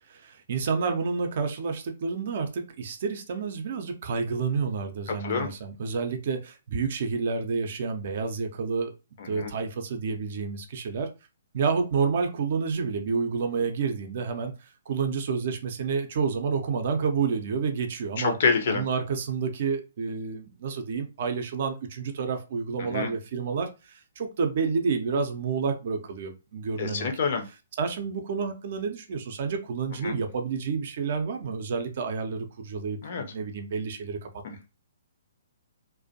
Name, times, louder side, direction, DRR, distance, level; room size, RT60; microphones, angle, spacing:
voice 1, 0.1-8.9 9.3-11.1 11.5-18.4 18.7-27.1 27.8-34.3, right 5 dB, 50° right, 0.5 m, -29 dB
voice 2, 9.2-9.5 18.2-18.8 22.8-23.1 26.8-27.4 30.0-30.2 33.0-33.2 34.4-34.5, left 5 dB, 50° left, 0.5 m, -27 dB
2.4 x 2.1 x 2.6 m
figure-of-eight pair, 125°, 0 cm